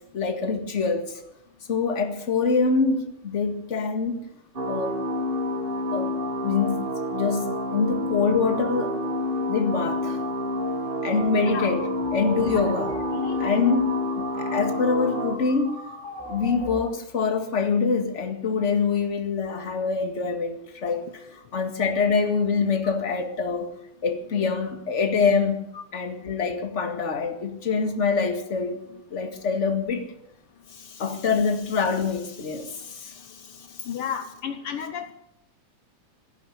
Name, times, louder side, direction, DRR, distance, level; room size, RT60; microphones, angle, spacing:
voice 1, 0.1-1.2 1.7-4.2 4.7-5.0 5.9-6.1 6.4-9.0 9.5-10.2 11.0-11.8 12.1-12.9 13.4-13.9 14.3-15.7 16.2-23.8 24.0-25.7 25.9-28.8 29.1-30.1 30.7-33.9, left 5 dB, 30° left, 1.7 m, -25 dB
sound 1, 4.5-15.4, left 1 dB, 40° right, 0.7 m, -28 dB
voice 2, 11.3-11.7 12.4-12.7 13.1-13.6 25.7-25.8 33.8-35.1, left 8 dB, 80° left, 1.2 m, -33 dB
sound 2, 11.5-16.8, left 1 dB, 10° left, 2.4 m, -39 dB
16.0 x 10.5 x 8.5 m
omnidirectional pair, 3.6 m